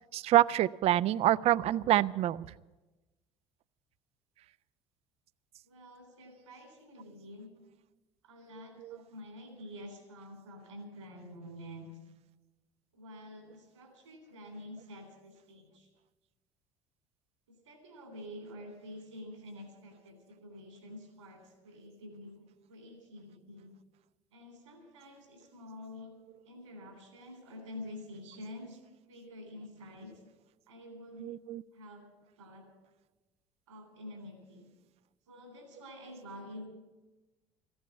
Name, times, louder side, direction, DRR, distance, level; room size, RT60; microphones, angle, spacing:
voice 1, 0.1-2.5 31.2-31.6, right 13 dB, 40° right, 20 dB, 0.4 m, -26 dB
voice 2, 5.6-7.5 8.2-11.9 12.9-15.9 17.5-23.7 24.3-26.1 26.5-28.8 29.1-30.2 30.7-31.3 31.7-32.1 32.4-32.7 33.7-34.7 35.3-36.7, left 1 dB, 80° right, 4 dB, 3.4 m, -48 dB
14.5 x 8.7 x 9.2 m, 1.1 s
figure-of-eight pair, 60°, 16 cm